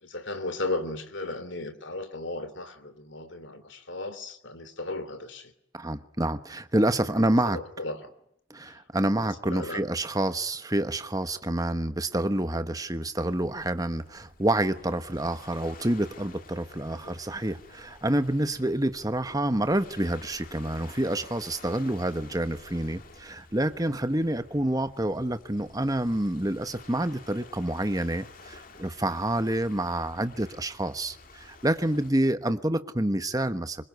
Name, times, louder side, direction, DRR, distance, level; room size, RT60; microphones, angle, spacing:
voice 1, 0.0-5.5 7.1-8.1 8.7-8.8 9.1-9.8 16.9-17.2 23.8-24.0 32.5-32.6, left 2 dB, 60° left, 2.8 m, -36 dB
voice 2, 5.7-7.6 8.5-33.8, right 1 dB, 15° right, 1.2 m, -28 dB
Waves surf, 13.2-32.1, left 3 dB, 40° left, 2.3 m, -51 dB
25.5 x 22.5 x 9.5 m
head